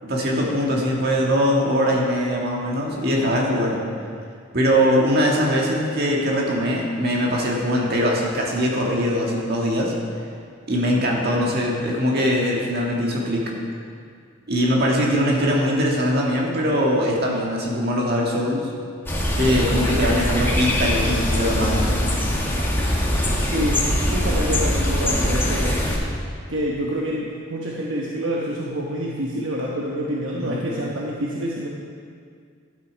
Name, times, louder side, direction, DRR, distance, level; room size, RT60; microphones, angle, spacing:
voice 1, 0.0-3.8 4.5-9.9 10.7-13.5 14.5-18.7 19.3-22.0 30.4-30.6, equal, 55° right, -2 dB, 1.9 m, -21 dB
sound 1, 19.1-26.0, left 1 dB, 10° left, 1.4 m, -22 dB
voice 2, 23.4-25.8 26.5-31.7, equal, 70° right, -3 dB, 1.1 m, -27 dB
12.0 x 7.8 x 5.1 m, 2.2 s
head